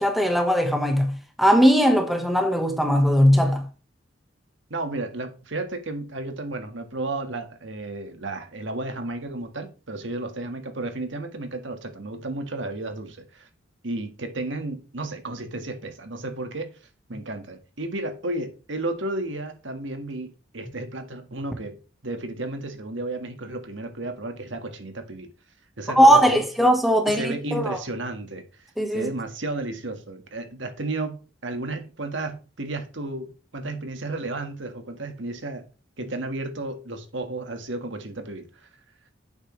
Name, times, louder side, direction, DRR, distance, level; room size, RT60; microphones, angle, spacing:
voice 1, 0.0-3.7 25.9-27.8 28.8-29.1, equal, ahead, 1.2 m, -19 dB
voice 2, 4.7-13.5 13.8-16.7 17.1-21.8 22.0-25.3 25.8-26.4 27.1-28.5 28.9-35.7 36.0-38.7, right 2 dB, 75° right, 1.6 m, -33 dB
9.9 x 8.1 x 3.2 m
head